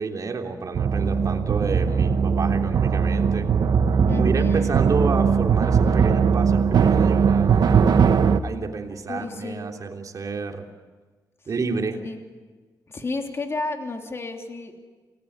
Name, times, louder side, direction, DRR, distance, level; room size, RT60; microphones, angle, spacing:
voice 1, 0.0-3.5 4.1-7.5 8.4-10.7 11.5-12.0, right 4 dB, 50° right, 3 dB, 3.2 m, -30 dB
sound 1, 0.7-8.4, right 6 dB, 70° right, 1.3 m, -19 dB
voice 2, 4.1-4.8 9.1-9.7 12.0-12.2 12.9-14.7, left 3 dB, 35° left, 3 dB, 3.2 m, -32 dB
28.0 x 19.0 x 9.8 m, 1.4 s
cardioid pair, 100°, 7 cm